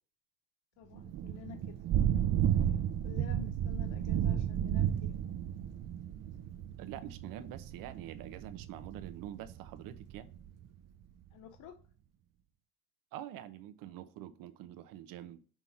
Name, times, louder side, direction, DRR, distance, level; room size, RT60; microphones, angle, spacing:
voice 1, 0.8-1.6 2.1-2.2 3.0-5.1 11.3-11.8, left 9 dB, 65° left, 7 dB, 0.7 m, -50 dB
Thunder / Rain, 1.0-10.5, right 10 dB, 50° right, 0.6 m, -33 dB
voice 2, 6.8-10.3 13.1-15.4, right 11 dB, 90° right, 12 dB, 0.8 m, -46 dB
5.9 x 3.6 x 5.6 m, 0.40 s
cardioid pair, 150°, 32 cm